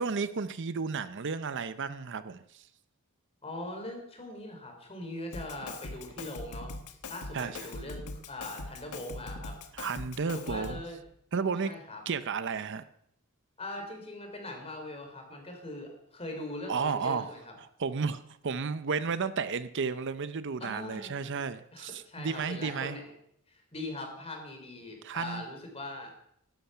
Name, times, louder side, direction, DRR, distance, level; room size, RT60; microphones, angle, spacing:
voice 1, 0.0-2.6 7.3-7.6 9.8-10.8 11.3-11.7 12.1-12.8 16.7-17.3 17.8-23.0 25.0-25.5, right 5 dB, 55° right, 13 dB, 0.6 m, -32 dB
voice 2, 3.4-9.5 10.3-11.0 11.6-12.0 13.6-17.5 20.6-21.2 21.7-23.1 23.5-26.1, left 1 dB, 25° left, 3 dB, 3.6 m, -41 dB
Drum kit, 5.3-10.9, left 3 dB, 90° left, 1.4 m, -42 dB
15.5 x 12.0 x 5.6 m, 0.72 s
head